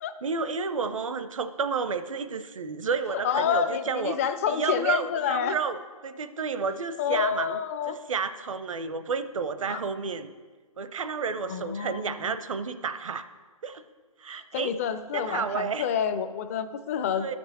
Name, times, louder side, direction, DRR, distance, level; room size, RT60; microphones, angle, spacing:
voice 1, 0.2-7.6 7.9-10.3 10.8-13.3 13.6-13.8 14.2-14.8 15.1-15.9 17.1-17.4, right 5 dB, 65° right, 11 dB, 0.7 m, -31 dB
voice 2, 3.2-5.6 7.0-8.0 9.7-9.8 11.5-12.3 14.3-17.4, left 8 dB, 25° left, 10 dB, 0.4 m, -28 dB
12.5 x 6.1 x 4.1 m, 1.4 s
figure-of-eight pair, 135°, 18 cm